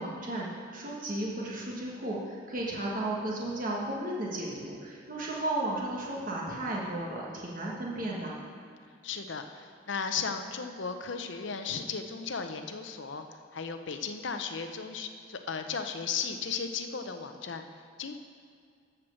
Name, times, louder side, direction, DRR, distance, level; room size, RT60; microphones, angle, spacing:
voice 1, 0.0-8.4, right 1 dB, 45° right, -4 dB, 1.4 m, -34 dB
voice 2, 9.0-13.3 13.5-17.6 18.0-18.2, left 5 dB, 65° left, 7 dB, 0.7 m, -35 dB
13.5 x 4.6 x 6.4 m, 2.3 s
head